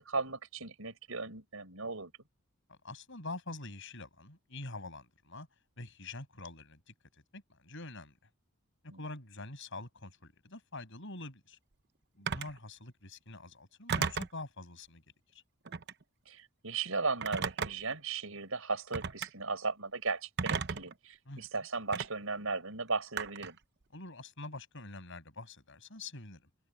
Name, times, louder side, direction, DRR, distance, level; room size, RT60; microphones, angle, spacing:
voice 1, 0.0-2.1 8.9-9.0 16.3-23.6, right 4 dB, 75° right, 5.9 m, -36 dB
voice 2, 2.7-5.5 5.8-6.9 7.3-8.2 8.8-11.6 12.2-15.0 15.3-15.4 21.3-21.5 23.9-26.5, left 2 dB, 60° left, 6.9 m, -45 dB
Telephone, 12.3-12.6 13.9-14.4 15.6-16.0 17.2-17.9 18.9-19.3 20.4-20.9 21.9-22.1 23.2-23.6, right 6 dB, 50° right, 0.8 m, -34 dB
head